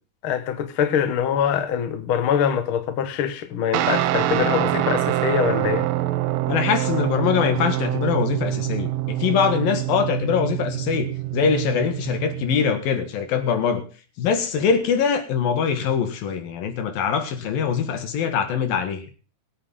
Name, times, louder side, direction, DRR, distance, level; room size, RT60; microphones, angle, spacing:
voice 1, 0.2-5.9, left 8 dB, 50° left, 1.6 m, -23 dB
Guitar, 3.7-12.7, right 15 dB, 80° right, 2.6 m, -25 dB
voice 2, 6.5-13.8 14.2-19.1, left 7 dB, 80° left, 3.6 m, -23 dB
22.5 x 8.6 x 3.7 m
omnidirectional pair, 4.0 m